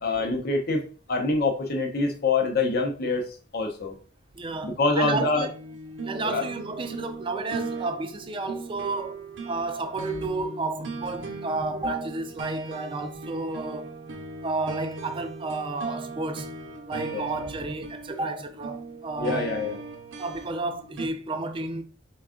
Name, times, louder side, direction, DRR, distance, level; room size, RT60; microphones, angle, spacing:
voice 1, 0.0-3.2 3.5-3.9 4.6-5.5 6.2-6.4 17.1-17.2 19.2-19.8, left 3 dB, 50° left, 0.6 m, -25 dB
voice 2, 4.4-5.5 6.0-13.9 14.4-16.5 16.9-19.5 20.2-21.8, right 3 dB, 25° right, 0.4 m, -31 dB
sound 1, 5.1-21.1, right 3 dB, 70° right, 0.7 m, -38 dB
3.5 x 2.3 x 3.6 m
head